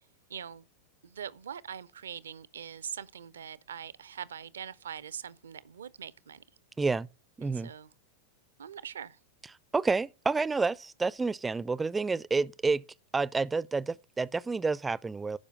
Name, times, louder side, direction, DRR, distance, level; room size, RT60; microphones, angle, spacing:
voice 1, 0.3-0.6 1.0-6.4 7.4-7.9 8.6-9.2, right 8 dB, 65° right, 0.5 m, -42 dB
voice 2, 6.8-7.1 7.4-7.7 9.7-12.8 13.1-15.4, right 4 dB, 10° right, 0.4 m, -29 dB
11.5 x 5.0 x 6.3 m
figure-of-eight pair, 90°, 0 cm